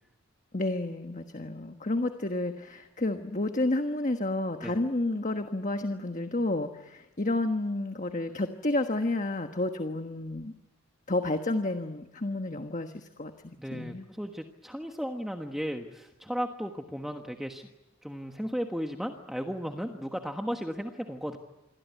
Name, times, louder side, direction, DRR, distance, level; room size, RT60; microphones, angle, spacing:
voice 1, 0.5-10.5 11.1-14.0, left 2 dB, 35° left, 6 dB, 1.3 m, -30 dB
voice 2, 13.6-17.7 18.0-21.4, equal, ahead, 3 dB, 1.3 m, -35 dB
27.5 x 22.5 x 9.4 m, 1.0 s
head